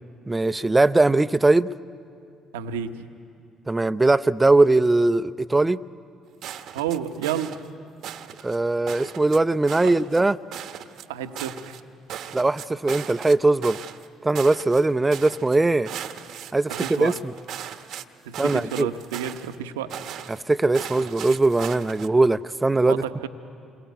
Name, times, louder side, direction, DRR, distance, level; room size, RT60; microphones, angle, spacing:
voice 1, 0.3-1.7 3.7-5.8 8.4-10.3 12.3-13.8 14.2-15.9 16.5-17.1 18.4-18.9 20.3-23.0, right 2 dB, 20° right, 13 dB, 0.7 m, -20 dB
voice 2, 2.5-3.0 6.7-7.6 9.8-9.9 11.1-11.8 16.7-17.2 18.2-19.9 22.8-23.3, right 9 dB, 85° right, 9 dB, 1.1 m, -30 dB
sound 1, 6.4-7.7 8.0-8.6 8.9-9.4 9.7-10.2 10.5-11.8 12.1-13.3 13.6-14.1 14.3-14.9 15.1-15.6 15.8-18.0 18.3-19.6 19.9-20.4 20.7-22.1, right 10 dB, 65° right, 1.1 m, -37 dB
28.0 x 22.5 x 9.4 m, 2.5 s
hypercardioid pair, 50°, 0 cm